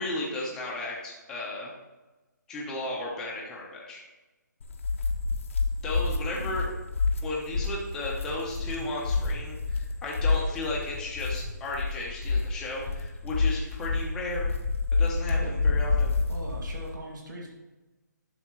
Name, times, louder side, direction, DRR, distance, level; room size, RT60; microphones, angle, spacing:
voice 1, 0.0-1.7 2.5-4.0 5.8-6.7 7.2-14.5 14.9-16.1, left 2 dB, 5° left, -4 dB, 0.9 m, -34 dB
sound 1, 4.6-16.9, left 4 dB, 40° left, 0.9 m, -28 dB
voice 2, 16.3-17.5, right 1 dB, 70° right, -1 dB, 2.4 m, -40 dB
11.0 x 6.4 x 3.1 m, 1.2 s
hypercardioid pair, 170°, 10 cm